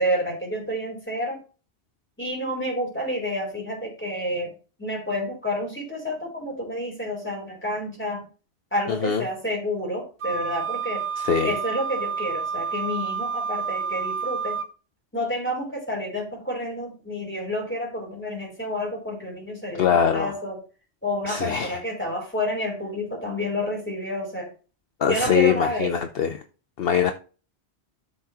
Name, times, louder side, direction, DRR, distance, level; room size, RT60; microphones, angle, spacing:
voice 1, 0.0-1.4 2.2-4.5 4.8-8.3 8.7-11.0 11.4-14.6 15.1-20.6 21.0-24.5 25.1-25.9, equal, 10° left, 4.1 m, -29 dB
voice 2, 8.9-9.2 11.2-11.6 19.8-20.3 21.3-21.8 25.0-26.4 26.8-27.1, left 8 dB, 60° left, 0.9 m, -22 dB
Wind instrument woodwind instrument, 10.2-14.7, right 6 dB, 50° right, 0.9 m, -29 dB
13.0 x 5.8 x 3.0 m
omnidirectional pair, 1.1 m